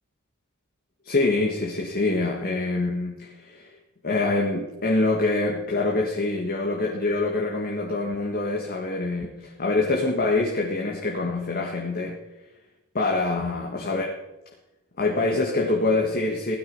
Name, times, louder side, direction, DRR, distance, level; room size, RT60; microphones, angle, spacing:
voice 1, 1.0-3.7 4.0-12.2 12.9-14.1 15.0-16.6, left 2 dB, 45° left, -1 dB, 1.7 m, -25 dB
16.5 x 12.0 x 5.5 m, 0.98 s
head